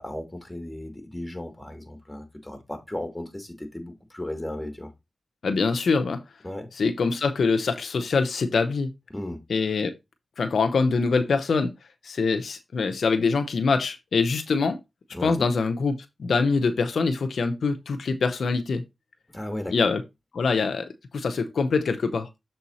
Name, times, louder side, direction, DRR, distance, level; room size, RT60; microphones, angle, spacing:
voice 1, 0.0-4.9 6.4-6.7 9.1-9.4 15.1-15.5 19.3-19.7, left 1 dB, 15° left, 2.5 m, -35 dB
voice 2, 5.4-6.2 6.8-8.9 9.5-9.9 10.4-11.7 12.0-14.8 15.2-18.8 19.7-20.0 20.3-22.3, left 4 dB, 85° left, 0.8 m, -24 dB
7.0 x 4.5 x 4.1 m
cardioid pair, 60°, 0 cm